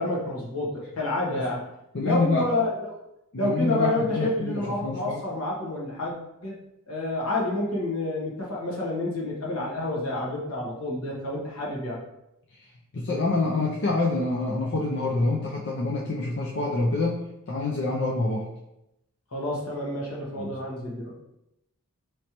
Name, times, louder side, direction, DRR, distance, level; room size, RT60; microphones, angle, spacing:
voice 1, 0.0-1.6 2.0-2.9 3.4-6.5 6.9-12.0 19.3-21.1, left 2 dB, 75° left, -4 dB, 1.3 m, -29 dB
voice 2, 1.9-2.5 3.3-5.2 12.5-12.7 12.9-18.5 20.4-20.5, left 3 dB, 55° left, -2 dB, 0.5 m, -27 dB
5.2 x 3.2 x 2.9 m, 0.86 s
head